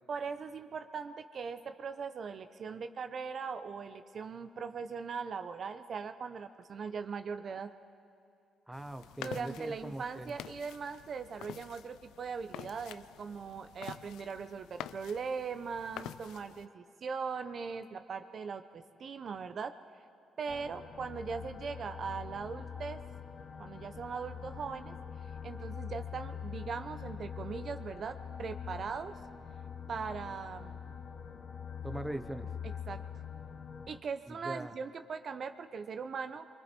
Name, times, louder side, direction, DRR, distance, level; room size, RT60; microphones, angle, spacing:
voice 1, 0.1-7.7 9.2-19.8 20.4-23.0 23.6-25.0 25.4-29.2 29.9-30.8 32.6-33.0 33.9-36.5, right 5 dB, 50° right, 8 dB, 0.8 m, -40 dB
sound 1, 8.7-16.7, left 11 dB, 90° left, 0.4 m, -48 dB
voice 2, 8.7-10.3 31.8-32.5 34.3-34.7, right 1 dB, 10° right, 8 dB, 0.9 m, -41 dB
sound 2, 20.5-34.0, left 7 dB, 50° left, 1.1 m, -44 dB
25.5 x 23.5 x 4.5 m, 2.6 s
cardioid pair, 90°, 0 cm